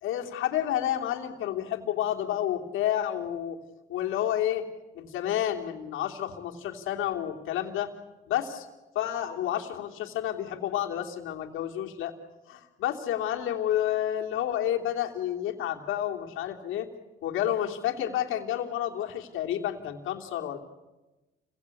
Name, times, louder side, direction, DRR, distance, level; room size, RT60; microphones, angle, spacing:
voice 1, 0.0-3.6 3.9-4.6 4.9-7.9 8.3-8.7 8.9-12.1 12.5-16.9 17.2-20.6, left 11 dB, 90° left, 2 dB, 3.1 m, -30 dB
29.5 x 22.5 x 8.5 m, 1.1 s
cardioid pair, 90°, 20 cm